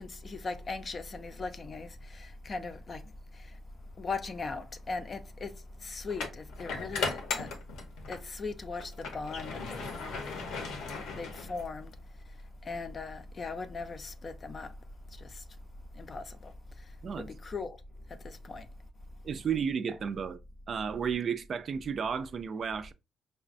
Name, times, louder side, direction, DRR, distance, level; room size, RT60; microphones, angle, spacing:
voice 1, 0.0-3.0 3.3-3.6 4.0-5.5 5.8-7.5 8.1-9.9 10.3-10.4 11.1-11.9 12.6-14.7 15.2-15.4 16.0-16.5 17.2-17.8 18.2-18.7, left 4 dB, 40° left, 0.5 m, -39 dB
sound 1, 4.0-4.2 6.1-8.3 8.7-11.9, left 4 dB, 85° left, 0.8 m, -37 dB
voice 2, 19.2-20.4 20.7-22.9, right 7 dB, 50° right, 0.4 m, -33 dB
4.9 x 2.2 x 2.5 m
cardioid pair, 90°, 0 cm